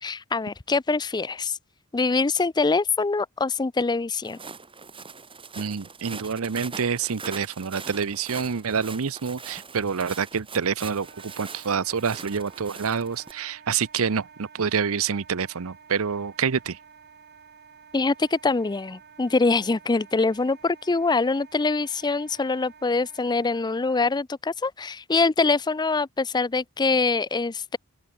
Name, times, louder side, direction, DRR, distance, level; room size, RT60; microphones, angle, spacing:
voice 1, 0.0-1.6 1.9-4.4 17.9-27.8, left 3 dB, 20° left, 0.5 m, -24 dB
Walk footsteps, 4.2-13.3, right 5 dB, 25° right, 4.6 m, -42 dB
voice 2, 5.6-16.8, right 6 dB, 70° right, 0.7 m, -27 dB
Wind instrument woodwind instrument, 11.0-24.1, right 6 dB, 50° right, 2.2 m, -51 dB
open air
head